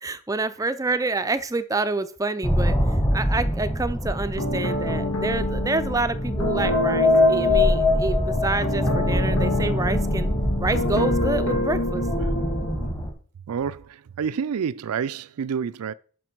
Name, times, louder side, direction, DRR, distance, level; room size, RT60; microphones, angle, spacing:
voice 1, 0.0-2.8 3.1-10.3 10.6-12.0, right 3 dB, 15° right, 0.4 m, -27 dB
sound 1, 2.4-13.1, left 1 dB, 15° left, 1.4 m, -24 dB
sound 2, 4.4-12.9, left 1 dB, 90° left, 2.3 m, -27 dB
voice 2, 13.5-15.9, right 7 dB, 85° right, 0.4 m, -28 dB
11.0 x 5.9 x 4.6 m
head